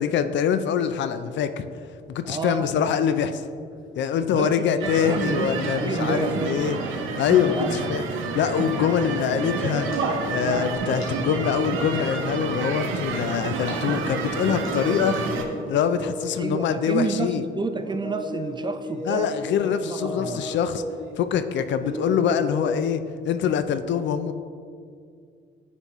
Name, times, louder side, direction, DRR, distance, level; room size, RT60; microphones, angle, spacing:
voice 1, 0.0-1.7 2.1-3.4 4.0-6.8 7.2-8.0 8.3-9.9 10.2-15.2 15.7-17.4 19.1-20.8 21.2-24.3, left 8 dB, 65° left, 10 dB, 0.4 m, -24 dB
voice 2, 2.2-2.9 4.3-6.7 7.6-7.9 16.4-19.3 19.8-20.5, right 4 dB, 25° right, 9 dB, 0.4 m, -30 dB
sound 1, 4.2-4.3 4.6-5.1 5.7-6.8 7.1-7.9 8.8-13.1 13.5-17.4 17.7-21.2 21.6-22.7, left 1 dB, 20° left, 1.4 m, -35 dB
sound 2, 4.8-15.4, right 4 dB, 80° right, 0.7 m, -29 dB
sound 3, 9.7-15.7, left 1 dB, 85° left, 1.6 m, -47 dB
9.3 x 4.2 x 3.0 m, 2.2 s
cardioid pair, 90°, 20 cm